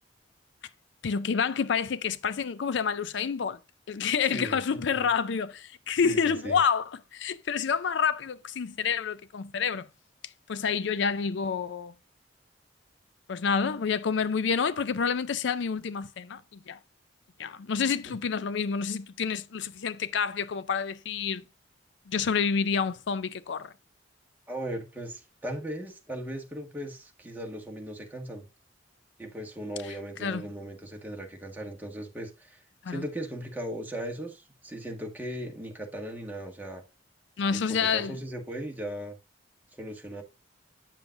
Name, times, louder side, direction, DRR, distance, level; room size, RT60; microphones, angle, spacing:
voice 1, 1.0-3.6 3.9-9.9 10.5-11.9 13.3-16.8 17.4-21.4 22.1-23.7 29.9-30.0 30.2-30.4 32.8-33.0 37.4-38.2, left 6 dB, 70° left, 0.4 m, -28 dB
voice 2, 6.0-6.6 18.0-18.1 24.5-28.5 29.2-36.8 37.5-39.2 39.8-40.2, right 1 dB, 10° right, 1.6 m, -38 dB
9.2 x 7.1 x 2.6 m
head